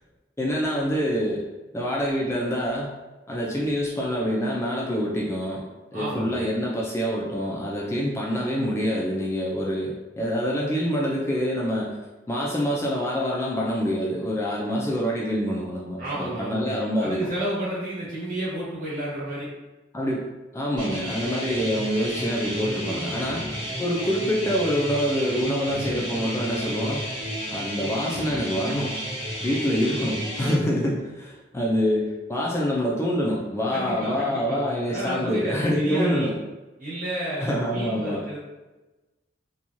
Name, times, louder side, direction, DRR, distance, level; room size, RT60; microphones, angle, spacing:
voice 1, 0.4-1.4 1.7-3.0 3.3-5.6 5.9-12.0 12.3-17.3 19.9-20.3 20.5-23.4 23.8-27.1 27.5-29.0 29.4-36.4 37.4-38.2, equal, 15° left, -4 dB, 0.3 m, -26 dB
voice 2, 5.9-6.7 16.0-19.5 33.7-36.3 36.8-38.4, right 1 dB, 50° right, -8 dB, 1.2 m, -32 dB
sound 1, 20.8-30.5, equal, 25° right, 0.9 m, -32 dB
2.9 x 2.3 x 2.5 m, 1.1 s
head